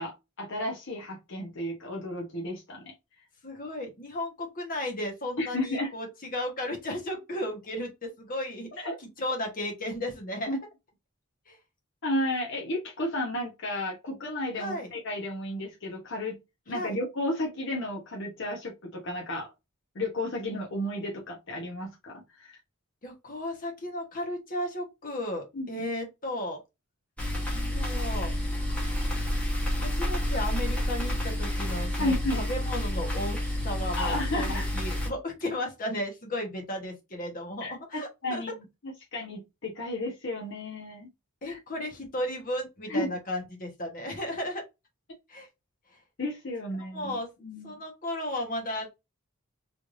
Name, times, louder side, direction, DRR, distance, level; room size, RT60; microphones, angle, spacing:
voice 1, 0.0-2.9 5.4-5.9 8.8-9.0 10.5-10.6 12.0-16.4 16.7-19.5 19.9-22.6 25.5-25.8 32.0-32.4 33.9-34.7 37.6-38.6 39.1-41.1 41.5-41.6 42.9-43.1 46.2-47.8, left 1 dB, 60° left, 1.0 m, -33 dB
voice 2, 3.4-6.1 6.3-8.8 9.2-10.6 11.5-11.6 14.6-14.9 16.7-17.0 23.0-26.6 27.5-28.3 29.7-38.4 41.4-44.6 45.3-45.5 46.9-47.3 47.6-48.9, left 1 dB, 40° left, 1.3 m, -34 dB
sound 1, 27.2-35.1, left 1 dB, 5° left, 1.2 m, -29 dB
3.3 x 3.2 x 2.6 m
head